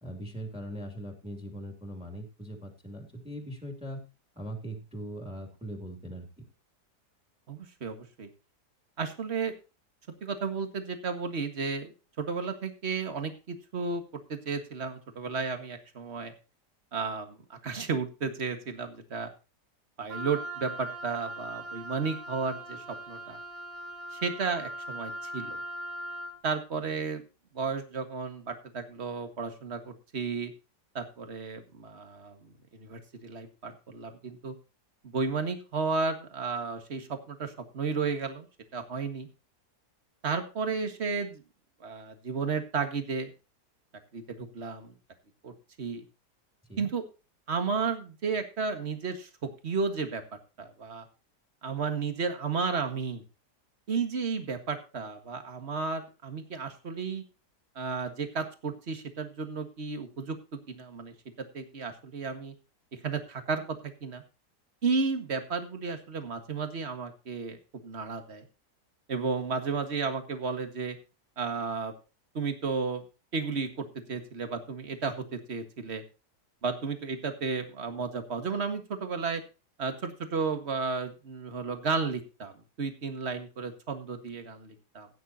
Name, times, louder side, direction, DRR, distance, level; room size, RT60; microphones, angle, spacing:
voice 1, 0.0-4.1 4.4-6.4 46.7-46.9, equal, 5° right, 3 dB, 2.8 m, -40 dB
voice 2, 7.5-8.3 9.0-9.5 10.2-11.9 12.2-14.0 14.3-16.3 16.9-19.3 20.0-23.4 24.1-25.6 26.4-27.2 27.5-30.5 31.0-32.4 32.7-34.5 35.0-38.5 38.7-39.3 40.2-41.4 41.8-43.3 44.1-44.9 45.4-45.5 45.8-46.0 46.8-47.0 47.5-49.3 49.6-50.2 50.6-51.1 51.6-53.2 53.9-57.2 57.8-61.1 61.5-62.5 62.9-64.2 64.8-68.4 69.1-71.0 71.4-71.9 72.3-73.0 73.3-76.0 76.6-79.4 79.8-85.1, right 4 dB, 40° right, 7 dB, 1.9 m, -33 dB
Wind instrument woodwind instrument, 20.1-26.4, right 1 dB, 85° right, 2.8 m, -40 dB
17.0 x 9.4 x 2.8 m, 0.31 s
omnidirectional pair, 1.8 m